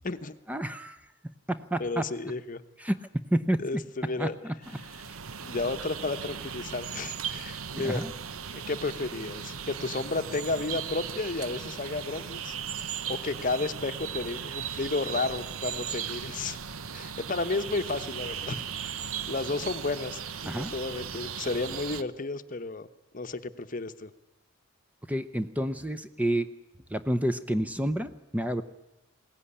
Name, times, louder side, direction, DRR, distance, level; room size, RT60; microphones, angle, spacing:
voice 1, 0.5-1.0 1.5-2.1 2.8-3.6 4.2-4.5 7.7-8.1 20.5-20.7 25.1-26.5 26.9-28.6, right 1 dB, 5° right, 10 dB, 0.7 m, -29 dB
voice 2, 1.8-2.6 3.6-4.4 5.4-8.0 8.5-12.5 13.1-16.6 16.9-18.9 19.2-22.9 23.1-24.1, left 3 dB, 40° left, 10 dB, 0.9 m, -32 dB
sound 1, 4.6-22.0, right 7 dB, 80° right, 0.9 m, -37 dB
21.5 x 17.5 x 9.9 m, 0.88 s
head